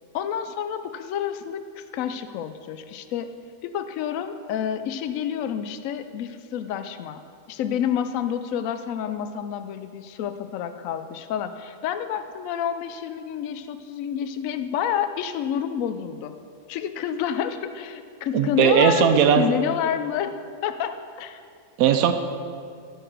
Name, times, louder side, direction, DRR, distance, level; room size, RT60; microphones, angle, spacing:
voice 1, 0.1-3.3 3.6-7.2 7.5-16.3 16.7-20.3 20.6-21.4, left 8 dB, 75° left, 10 dB, 1.0 m, -29 dB
voice 2, 18.3-19.4 21.8-22.1, right 8 dB, 90° right, 8 dB, 1.1 m, -18 dB
13.5 x 4.8 x 6.3 m, 2.3 s
omnidirectional pair, 1.5 m